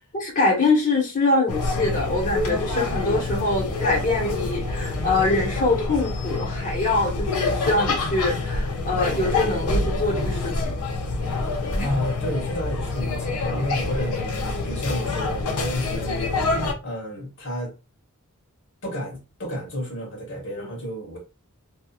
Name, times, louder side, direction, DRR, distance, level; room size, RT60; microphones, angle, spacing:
voice 1, 0.1-10.8 11.6-11.9 20.6-20.7, left 2 dB, 40° left, 1.0 m, -24 dB
sound 1, 1.5-16.7, left 3 dB, 85° left, 0.6 m, -26 dB
voice 2, 11.5-16.2 16.8-17.7 18.8-21.2, equal, 60° left, 1.3 m, -31 dB
2.8 x 2.3 x 2.4 m
head